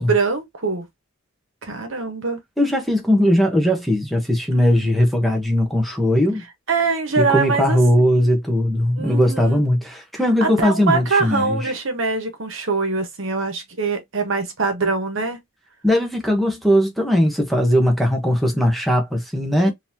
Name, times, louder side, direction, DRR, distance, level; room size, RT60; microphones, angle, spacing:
voice 1, 0.1-0.9 1.6-2.4 4.5-5.0 6.7-8.3 9.0-9.6 10.4-15.4 19.6-19.7, right 4 dB, 65° right, 1.1 m, -23 dB
voice 2, 2.6-6.4 7.2-11.6 15.8-19.7, equal, ahead, 0.9 m, -19 dB
3.9 x 2.8 x 2.7 m
head